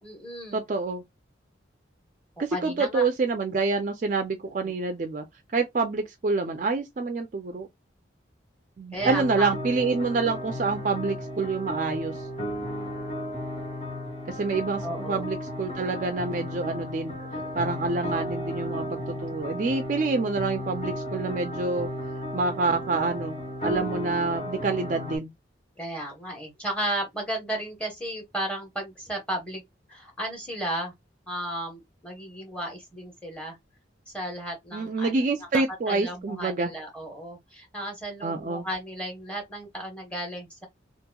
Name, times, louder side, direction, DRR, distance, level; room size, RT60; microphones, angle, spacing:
voice 1, 0.0-0.6 2.4-3.1 4.6-4.7 8.9-9.5 14.8-15.3 17.2-17.6 25.8-29.6 29.9-30.9 31.3-33.6 34.1-35.1 35.5-40.6, right 1 dB, 5° left, 1.0 m, -34 dB
voice 2, 0.5-1.0 2.4-5.2 5.5-7.7 8.8-12.1 14.3-17.1 17.6-21.9 22.3-23.4 23.6-25.3 34.7-36.7 38.2-38.7, right 3 dB, 40° right, 0.4 m, -27 dB
sound 1, 9.0-25.2, left 1 dB, 35° left, 1.3 m, -34 dB
2.9 x 2.5 x 2.2 m
head